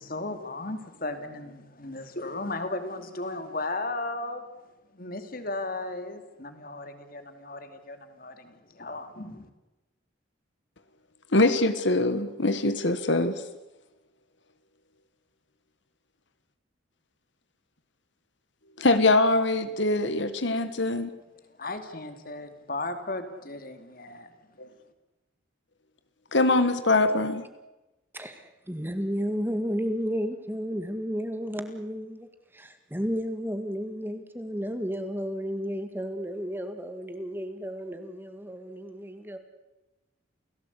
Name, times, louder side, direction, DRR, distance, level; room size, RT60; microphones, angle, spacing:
voice 1, 0.0-4.4 4.9-9.5 21.5-24.3, left 2 dB, 45° left, 2.6 m, -35 dB
voice 2, 11.3-13.4 18.8-21.1 24.6-24.7 26.3-27.4, left 2 dB, 65° left, 1.5 m, -23 dB
voice 3, 28.1-39.4, equal, 10° right, 1.9 m, -32 dB
29.0 x 17.0 x 8.4 m
head